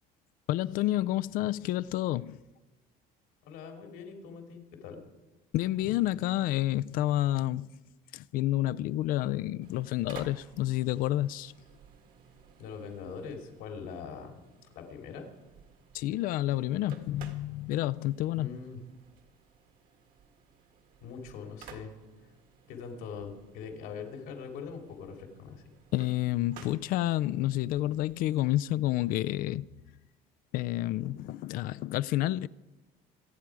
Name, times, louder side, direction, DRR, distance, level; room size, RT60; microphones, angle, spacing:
voice 1, 0.5-2.4 5.5-7.7 8.1-11.5 15.9-18.6 25.9-29.7 30.5-32.5, left 15 dB, 60° left, 0.4 m, -29 dB
voice 2, 3.4-5.0 12.6-14.4 14.7-15.3 18.3-18.8 21.0-21.9 22.7-25.6, left 6 dB, 80° left, 2.9 m, -42 dB
sound 1, 9.6-29.2, right 6 dB, 60° right, 1.6 m, -56 dB
25.5 x 9.2 x 4.8 m
cardioid pair, 165°, 16 cm